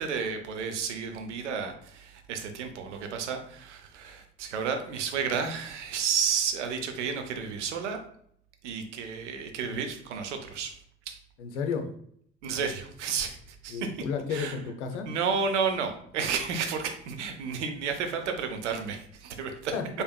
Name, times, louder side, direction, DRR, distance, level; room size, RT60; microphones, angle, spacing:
voice 1, 0.0-8.0 8.6-10.7 11.1-11.2 12.4-14.0 14.3-14.6 15.0-19.7, right 6 dB, 80° right, 5 dB, 0.7 m, -32 dB
voice 2, 11.4-11.9 13.7-15.1 19.7-20.0, left 6 dB, 75° left, 6 dB, 0.6 m, -32 dB
4.4 x 3.3 x 2.3 m, 0.66 s
figure-of-eight pair, 55°, 35 cm